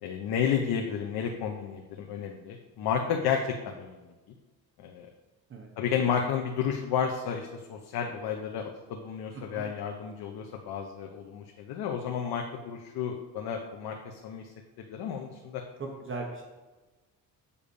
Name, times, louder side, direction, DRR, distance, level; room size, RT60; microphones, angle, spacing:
voice 1, 0.0-4.0 4.8-5.1 5.8-15.6, left 7 dB, 85° left, 3 dB, 0.9 m, -32 dB
voice 2, 9.3-9.7 15.8-16.4, right 3 dB, 35° right, 1 dB, 1.0 m, -38 dB
7.0 x 5.1 x 6.9 m, 1.2 s
cardioid pair, 155°, 37 cm